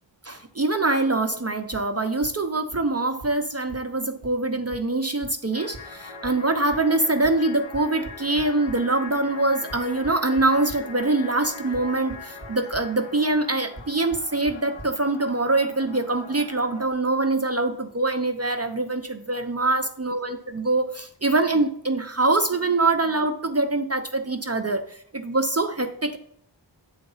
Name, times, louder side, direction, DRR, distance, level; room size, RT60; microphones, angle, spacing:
voice 1, 0.2-26.2, right 2 dB, 35° right, 5 dB, 0.7 m, -24 dB
sound 1, 1.7-1.8 2.2-2.3 2.7-2.8 3.2-3.3 3.7-3.8 4.2-4.3 4.7-4.8 5.2-5.3 5.7-5.8 6.2-6.3 6.7-6.8 7.2-7.3 7.7-8.7 9.7-10.8 11.7-11.8 12.1-12.5 12.7-12.8 13.8-13.9 14.1-14.2 14.5-14.6 14.8-14.9, right 1 dB, 60° left, 2.3 m, -39 dB
sound 2, 5.5-16.9, left 4 dB, 85° left, 1.0 m, -42 dB
8.8 x 4.0 x 5.5 m, 0.65 s
wide cardioid pair, 45°, 45 cm